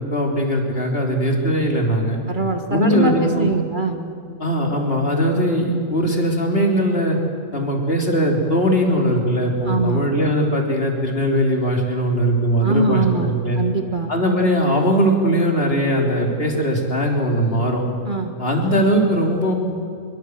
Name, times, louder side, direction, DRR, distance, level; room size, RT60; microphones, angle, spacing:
voice 1, 0.1-2.2 2.7-3.5 4.4-7.2 7.5-13.6 14.1-17.8 18.4-19.5, equal, 45° left, 1 dB, 3.7 m, -20 dB
voice 2, 2.3-4.0 9.7-10.1 12.6-14.1 18.1-18.3, right 2 dB, 35° right, 5 dB, 1.9 m, -22 dB
25.0 x 23.0 x 8.0 m, 2.4 s
omnidirectional pair, 1.4 m